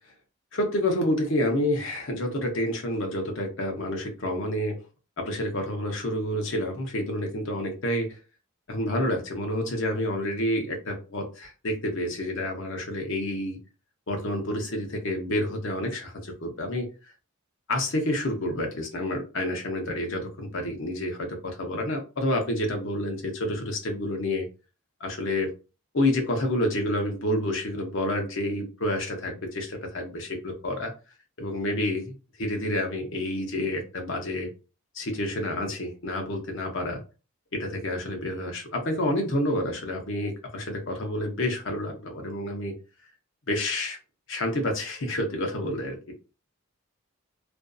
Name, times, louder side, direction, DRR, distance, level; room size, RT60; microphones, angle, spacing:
voice 1, 0.5-4.8 5.2-8.1 8.7-13.6 14.1-16.9 17.7-24.5 25.0-25.5 25.9-30.9 31.4-34.5 34.9-37.0 37.5-42.7 43.5-44.0 44.3-46.2, left 1 dB, 60° left, 2 dB, 0.7 m, -29 dB
2.5 x 2.5 x 2.3 m, 0.32 s
head